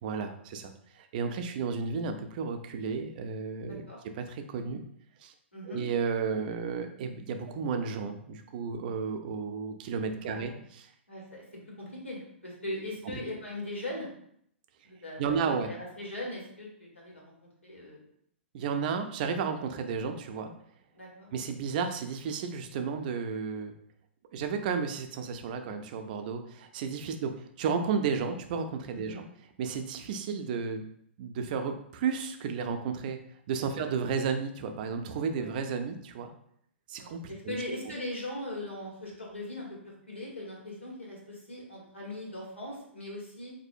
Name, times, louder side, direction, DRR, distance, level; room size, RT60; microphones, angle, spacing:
voice 1, 0.0-3.9 4.1-4.8 5.2-5.3 5.7-10.9 15.2-15.7 18.5-20.5 21.3-23.7 24.3-29.2 29.6-30.8 31.2-33.2 33.5-36.3 36.9-37.6, right 5 dB, 45° right, 6 dB, 0.4 m, -33 dB
voice 2, 3.7-4.0 5.5-5.8 10.2-10.5 11.1-11.4 11.8-14.1 14.8-17.3 17.6-18.0 20.9-21.3 28.9-29.2 33.7-33.8 35.4-35.5 36.9-43.5, left 1 dB, 85° left, -3 dB, 1.4 m, -40 dB
4.0 x 2.6 x 2.6 m, 0.68 s
figure-of-eight pair, 110°, 7 cm